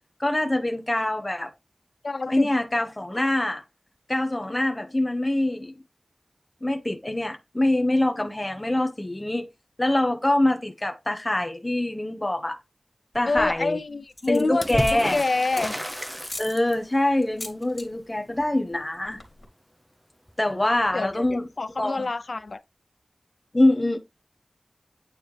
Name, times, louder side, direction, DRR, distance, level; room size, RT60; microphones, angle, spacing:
voice 1, 0.2-1.5 2.3-3.6 4.1-5.7 6.6-9.4 9.8-12.6 13.1-13.8 14.3-15.2 16.4-19.2 20.4-21.5 21.8-22.1 23.5-24.0, left 1 dB, 25° left, 1.2 m, -24 dB
voice 2, 2.0-2.5 13.3-15.8 20.9-22.6, left 3 dB, 70° left, 0.5 m, -27 dB
sound 1, 13.1-13.6 14.1-15.9 16.3-16.5 17.2-17.9 18.1-18.5 18.7-18.8 19.0-19.4, left 2 dB, 40° left, 2.7 m, -37 dB
Water / Splash splatter, 14.6-17.0 20.3-20.4 20.6-21.4 22.5-22.6, equal, ahead, 0.8 m, -32 dB
9.1 x 4.1 x 3.4 m
wide cardioid pair, 75°, 0 cm